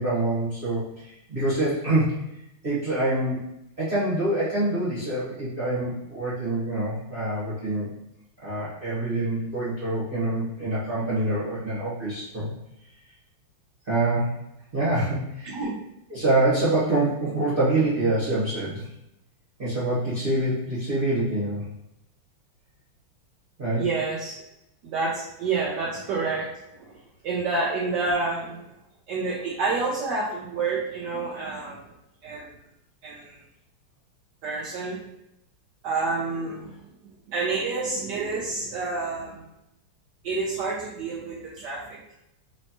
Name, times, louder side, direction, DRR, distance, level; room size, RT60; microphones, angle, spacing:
voice 1, 0.0-2.2 2.6-3.4 3.8-7.9 8.4-12.5 13.9-14.4 14.7-15.6 16.1-18.9 19.6-21.6 23.6-23.8, right 2 dB, 30° right, -11 dB, 1.3 m, -25 dB
voice 2, 15.4-15.8 23.8-24.3 24.8-26.5 26.8-27.0 27.2-28.6 29.1-31.8 32.2-32.5 33.0-33.4 34.4-35.0 35.8-36.8 37.3-39.4 40.2-42.0, right 3 dB, 70° right, -3 dB, 1.0 m, -28 dB
4.3 x 3.1 x 2.9 m, 0.84 s
omnidirectional pair, 2.4 m